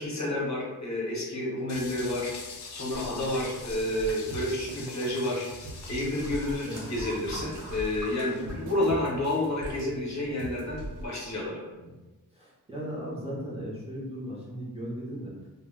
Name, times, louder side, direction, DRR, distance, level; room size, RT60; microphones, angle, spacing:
voice 1, 0.0-2.3 2.7-5.5 5.9-11.6, left 1 dB, 45° left, -4 dB, 0.8 m, -30 dB
sound 1, 1.7-8.5, left 4 dB, 90° left, 0.5 m, -45 dB
sound 2, 2.9-11.1, right 1 dB, 90° right, 0.5 m, -42 dB
sound 3, 5.6-9.1 9.4-9.8 10.5-10.6, right 1 dB, 55° right, 0.9 m, -45 dB
voice 2, 12.3-15.3, equal, 15° right, -7 dB, 0.5 m, -37 dB
2.1 x 2.0 x 3.4 m, 1.1 s
wide cardioid pair, 145°, 38 cm